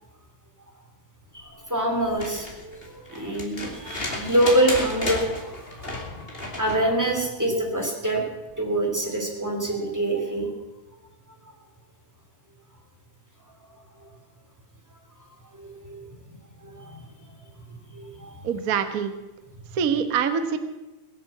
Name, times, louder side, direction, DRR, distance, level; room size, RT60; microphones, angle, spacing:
voice 1, 1.3-8.2 8.6-10.5 14.0-14.1 15.5-17.4 17.7-18.5, right 1 dB, 5° right, 1 dB, 2.6 m, -26 dB
sound 1, 2.0-6.9 8.5-8.6, left 2 dB, 20° left, 2.4 m, -33 dB
voice 2, 18.4-19.1 19.7-20.6, right 7 dB, 70° right, 8 dB, 0.8 m, -24 dB
22.0 x 7.4 x 7.2 m, 1.1 s
omnidirectional pair, 3.4 m